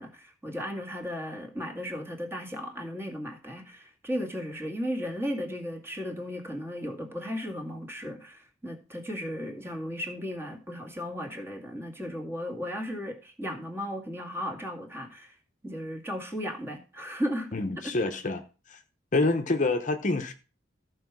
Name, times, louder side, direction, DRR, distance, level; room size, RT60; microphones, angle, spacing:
voice 1, 0.0-15.4 15.6-17.5, equal, 15° right, 2.1 m, -35 dB
voice 2, 17.5-18.8 19.1-20.3, left 2 dB, 40° left, 0.8 m, -27 dB
14.0 x 4.8 x 6.1 m
head